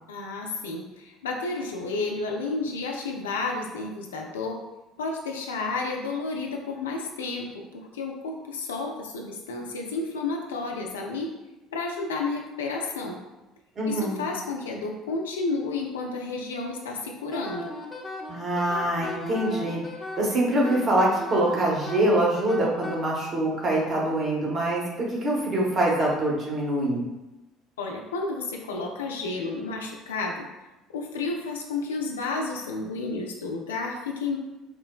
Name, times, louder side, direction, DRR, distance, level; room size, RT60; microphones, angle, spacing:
voice 1, 0.1-4.6 5.0-11.3 11.7-13.2 13.8-17.7 27.8-30.5 30.9-34.4, left 3 dB, 80° left, 1 dB, 0.4 m, -31 dB
voice 2, 13.8-14.2 18.3-19.8 20.2-27.1, right 1 dB, 45° right, -3 dB, 1.1 m, -24 dB
Wind instrument woodwind instrument, 17.3-23.0, left 1 dB, 15° left, 0.6 m, -36 dB
4.4 x 2.1 x 2.2 m, 1.0 s
figure-of-eight pair, 60°, 0 cm